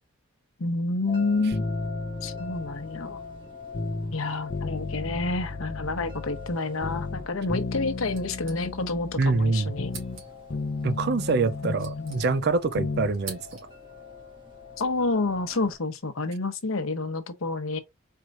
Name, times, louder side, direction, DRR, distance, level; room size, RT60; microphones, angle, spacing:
voice 1, 0.6-1.8 2.2-3.2 4.1-9.9 11.6-12.2 14.8-17.8, left 3 dB, 85° left, 1.0 m, -29 dB
sound 1, 1.1-15.8, left 5 dB, 25° right, 1.6 m, -44 dB
sound 2, 1.5-4.2 4.5-6.6 6.8-10.2 10.5-13.1 13.4-13.5, left 3 dB, 50° left, 0.6 m, -34 dB
sound 3, 8.1-9.1 9.4-9.5 9.9-10.6 11.4-12.7 12.9-13.9, right 4 dB, 75° right, 2.5 m, -45 dB
voice 2, 9.2-9.8 10.8-13.5, right 3 dB, 50° right, 0.5 m, -25 dB
4.5 x 4.5 x 2.5 m
head